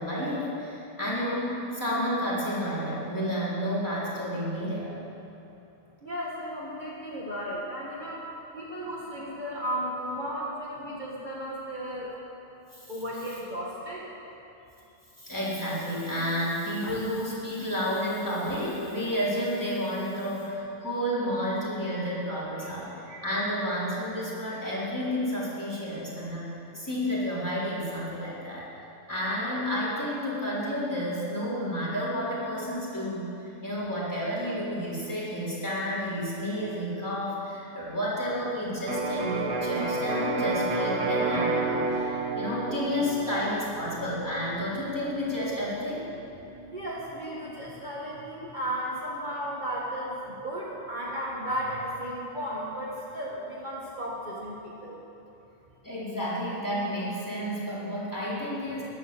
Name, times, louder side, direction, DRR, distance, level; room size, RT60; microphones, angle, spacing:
voice 1, 0.0-4.9 12.8-12.9 15.2-26.5 26.7-28.7 29.1-46.1 55.8-58.8, equal, 15° left, -9 dB, 4.0 m, -31 dB
voice 2, 6.0-12.1 12.9-14.1 16.8-16.9 22.6-22.7 46.7-55.0, equal, 35° right, -6 dB, 1.9 m, -34 dB
Electric guitar, 38.9-46.6, right 3 dB, 70° right, 1.8 m, -31 dB
13.5 x 10.5 x 7.1 m, 2.9 s
omnidirectional pair, 1.3 m